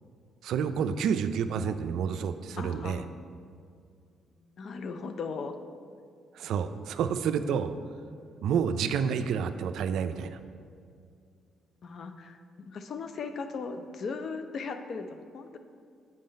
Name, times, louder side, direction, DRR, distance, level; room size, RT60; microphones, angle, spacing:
voice 1, 0.4-3.0 6.3-7.7 8.4-10.4, right 7 dB, 75° right, 10 dB, 0.3 m, -29 dB
voice 2, 2.6-3.1 4.4-5.6 11.8-15.6, left 4 dB, 55° left, 8 dB, 0.5 m, -38 dB
7.5 x 3.9 x 5.1 m, 2.3 s
cardioid pair, 80°, 0 cm